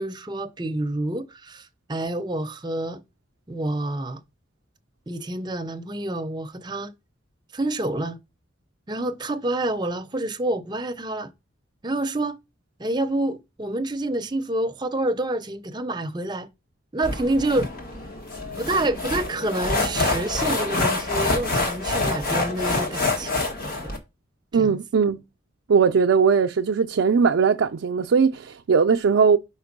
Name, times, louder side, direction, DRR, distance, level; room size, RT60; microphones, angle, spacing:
voice 1, 0.0-3.0 3.5-4.2 5.1-6.9 7.5-8.2 8.9-11.3 11.8-12.4 12.8-16.5 16.9-17.7 18.6-23.9 24.5-24.8, right 1 dB, 25° right, 0.6 m, -28 dB
sound 1, 17.0-24.0, left 2 dB, 50° left, 1.4 m, -26 dB
voice 2, 24.5-25.2 25.7-29.4, right 5 dB, 80° right, 0.4 m, -19 dB
5.1 x 4.4 x 5.9 m
head